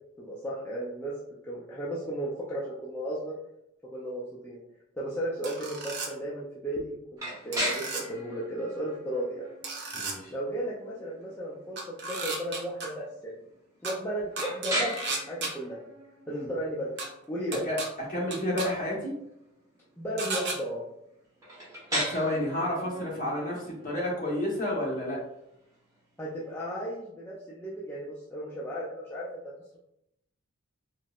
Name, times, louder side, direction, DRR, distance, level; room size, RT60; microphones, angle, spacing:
voice 1, 0.2-1.1 1.4-3.3 3.9-4.6 4.9-9.5 10.3-11.8 12.1-13.3 13.8-14.9 15.2-15.8 16.3-16.9 17.3-17.6 20.0-20.8 26.2-29.3, right 1 dB, 10° left, -7 dB, 0.4 m, -34 dB
sound 1, 5.4-6.1 7.5-8.0 9.6-10.1 11.8-12.9 13.8-13.9 14.4-15.5 17.0-17.1 17.5-17.9 18.3-18.7 20.2-20.6, right 3 dB, 55° right, 0.6 m, -34 dB
sound 2, 7.2-26.9, equal, 15° right, 0.9 m, -39 dB
voice 2, 9.9-10.3 16.3-16.5 17.6-17.8 18.1-19.1 21.9-25.2, left 1 dB, 40° left, -5 dB, 1.1 m, -30 dB
4.3 x 2.1 x 2.4 m, 0.81 s
head